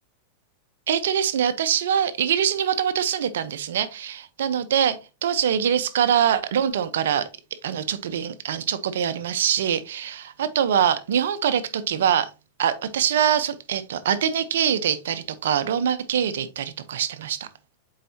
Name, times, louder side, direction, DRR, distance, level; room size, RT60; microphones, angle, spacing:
voice 1, 0.9-7.3 7.6-12.3 12.6-17.5, right 9 dB, 80° right, 0.8 m, -24 dB
7.5 x 4.8 x 2.8 m
hypercardioid pair, 115°, 0 cm